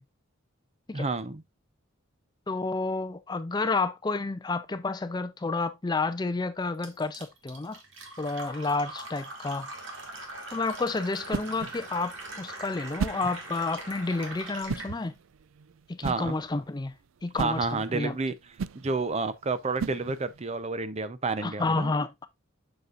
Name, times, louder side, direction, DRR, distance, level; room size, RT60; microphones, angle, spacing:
voice 1, 0.9-1.4 16.0-16.4 17.4-18.3 18.8-21.9, right 3 dB, 30° right, 0.6 m, -30 dB
voice 2, 2.5-7.8 8.2-9.7 10.5-15.1 15.9-16.9 17.2-18.2 21.4-22.3, left 3 dB, 20° left, 0.4 m, -30 dB
Fill (with liquid), 6.8-14.9, right 2 dB, 65° right, 2.1 m, -42 dB
sound 1, 8.0-14.6, left 1 dB, 15° right, 2.2 m, -51 dB
sound 2, 10.0-20.5, right 5 dB, 80° right, 0.4 m, -39 dB
6.9 x 6.5 x 2.4 m
head